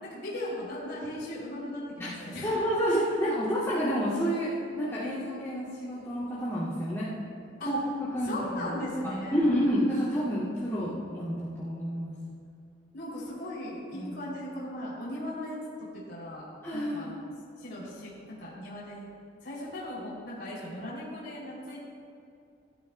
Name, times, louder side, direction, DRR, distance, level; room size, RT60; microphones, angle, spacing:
voice 1, 0.0-2.5 7.6-7.7 8.2-9.5 12.9-17.3 17.6-19.1 19.4-21.8, left 1 dB, 60° left, -7 dB, 3.1 m, -38 dB
voice 2, 2.0-7.1 7.6-8.7 9.3-12.1 13.9-14.2 16.6-17.1, equal, 15° left, -12 dB, 2.4 m, -29 dB
17.5 x 12.5 x 2.3 m, 2.5 s
head